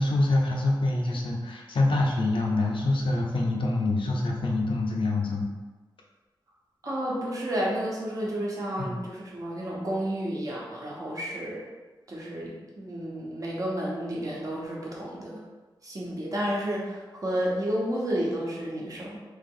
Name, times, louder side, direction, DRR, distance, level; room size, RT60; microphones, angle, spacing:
voice 1, 0.0-5.5 8.8-9.0, left 2 dB, 85° left, -1 dB, 0.7 m, -25 dB
voice 2, 6.8-11.6 12.1-15.4 15.8-19.2, right 1 dB, 45° right, -4 dB, 1.0 m, -31 dB
3.6 x 3.0 x 3.7 m, 1.3 s
wide cardioid pair, 145°, 8 cm